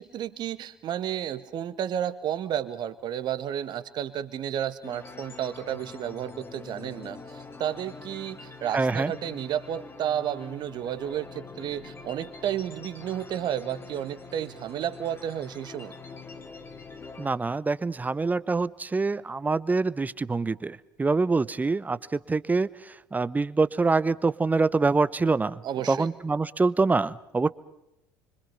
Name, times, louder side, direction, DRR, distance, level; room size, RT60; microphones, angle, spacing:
voice 1, 0.0-15.9 25.6-26.1, right 10 dB, 45° right, 12 dB, 1.6 m, -32 dB
sound 1, 4.8-17.3, left 4 dB, 25° left, 2.8 m, -45 dB
voice 2, 8.7-9.1 17.2-25.6 25.9-27.5, right 3 dB, 15° right, 17 dB, 0.9 m, -25 dB
26.0 x 25.0 x 5.6 m, 0.86 s
figure-of-eight pair, 60°, 10 cm